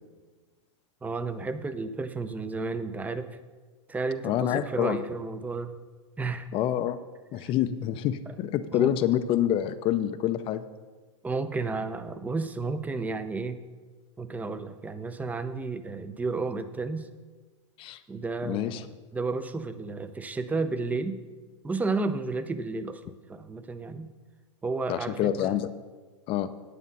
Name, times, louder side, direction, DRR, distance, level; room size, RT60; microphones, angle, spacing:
voice 1, 1.0-3.3 3.9-5.7 6.2-6.5 7.4-7.5 8.7-8.9 11.2-13.6 14.2-17.1 18.1-21.2 21.6-24.1 24.6-25.6, right 3 dB, 10° right, 11 dB, 0.6 m, -32 dB
voice 2, 4.2-5.0 6.5-7.0 7.3-10.7 17.8-18.0 18.4-18.8 24.9-25.7 26.3-26.5, left 11 dB, 35° left, 12 dB, 0.5 m, -27 dB
9.6 x 8.2 x 5.5 m, 1.4 s
hypercardioid pair, 120°, 16 cm